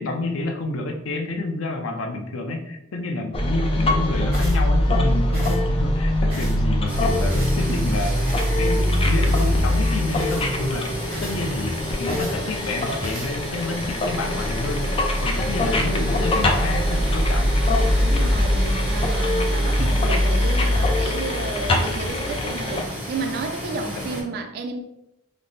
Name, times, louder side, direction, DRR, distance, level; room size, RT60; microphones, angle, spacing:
voice 1, 0.0-8.2 8.6-10.9 11.2-14.9 15.2-17.6 23.9-24.3, left 2 dB, 80° left, 4 dB, 0.6 m, -29 dB
sound 1, 3.3-22.8, left 1 dB, 25° left, 0.4 m, -22 dB
sound 2, 4.3-4.6 5.3-5.6 6.3-6.6 7.3-7.6 8.3-8.5 9.2-9.5 10.2-10.5 11.1-11.4 12.1-12.4 13.0-13.3, right 1 dB, 30° right, 1.4 m, -38 dB
sound 3, 6.9-24.2, equal, 5° right, 1.0 m, -34 dB
voice 2, 7.7-8.0 8.4-8.8 18.0-24.8, right 3 dB, 50° right, 5 dB, 0.3 m, -32 dB
3.2 x 2.0 x 4.0 m, 0.83 s
head